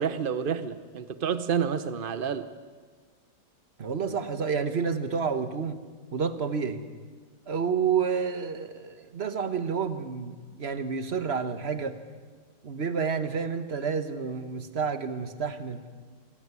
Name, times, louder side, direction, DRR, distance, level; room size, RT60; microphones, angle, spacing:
voice 1, 0.0-2.5, right 7 dB, 80° right, 12 dB, 0.4 m, -29 dB
voice 2, 3.8-5.8 6.1-6.8 7.5-11.9 12.6-15.8, right 6 dB, 35° right, 10 dB, 1.2 m, -29 dB
27.0 x 17.0 x 9.6 m, 1.5 s
omnidirectional pair, 2.3 m